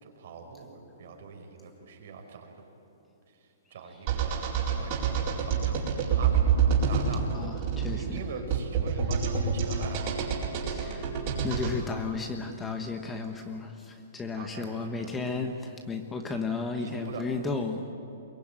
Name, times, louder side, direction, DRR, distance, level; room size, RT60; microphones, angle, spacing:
voice 1, 0.0-2.5 3.7-5.7 6.1-7.3 7.9-10.3 14.4-15.3 16.8-17.2, right 5 dB, 60° right, 3 dB, 4.9 m, -42 dB
sound 1, 4.1-11.7, right 6 dB, 35° right, 4.8 m, -27 dB
voice 2, 7.3-8.2 10.6-11.2 11.4-17.9, left 4 dB, 10° left, 5 dB, 1.2 m, -34 dB
22.5 x 21.5 x 9.1 m, 2.7 s
hypercardioid pair, 155°, 0 cm